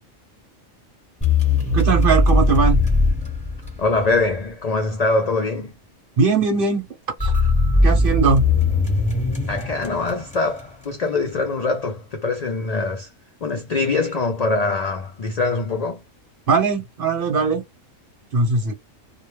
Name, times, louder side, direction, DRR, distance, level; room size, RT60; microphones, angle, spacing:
sound 1, 1.2-4.2 7.2-10.6, left 2 dB, 5° left, 0.8 m, -19 dB
voice 1, 1.7-2.8 6.2-6.9 7.2-7.3 7.8-8.4 16.5-17.6 18.3-18.7, right 5 dB, 50° right, 0.9 m, -19 dB
voice 2, 3.8-5.7 9.5-13.1 13.4-16.0, left 3 dB, 75° left, 0.3 m, -23 dB
2.3 x 2.1 x 3.0 m
omnidirectional pair, 1.4 m